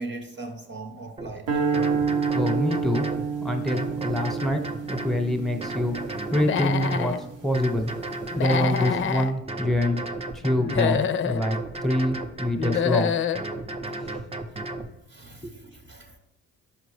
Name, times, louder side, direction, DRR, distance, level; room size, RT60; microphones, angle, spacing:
voice 1, 0.0-1.5 13.8-14.0 15.1-16.2, right 2 dB, 40° right, 3 dB, 0.9 m, -39 dB
sound 1, 1.2-1.3 1.7-3.3 3.7-5.2 5.6-7.1 7.5-9.1 9.5-11.0 11.4-12.9 13.3-14.9, right 2 dB, 20° right, 0.5 m, -34 dB
sound 2, 1.5-7.8, right 5 dB, 90° right, 1.1 m, -29 dB
voice 2, 2.3-3.1 3.4-7.9 8.3-10.0 10.3-11.6 11.8-13.1 14.0-14.1 15.4-15.5, left 1 dB, ahead, 5 dB, 0.9 m, -26 dB
Human voice / Animal, 6.4-7.2 8.3-9.3 10.6-11.4 12.6-13.4, left 8 dB, 40° left, 0.4 m, -26 dB
5.9 x 5.1 x 3.2 m, 0.95 s
cardioid pair, 90°, 30 cm